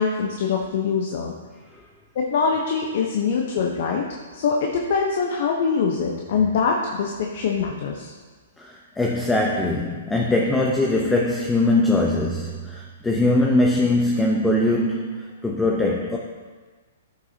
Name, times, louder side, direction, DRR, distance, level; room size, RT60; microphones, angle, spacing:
voice 1, 0.0-1.3 2.2-4.0 4.3-8.1, left 5 dB, 60° left, 0 dB, 0.9 m, -23 dB
voice 2, 8.6-16.2, left 2 dB, 10° left, -1 dB, 0.8 m, -21 dB
14.0 x 5.7 x 2.8 m, 1.4 s
hypercardioid pair, 120°, 0 cm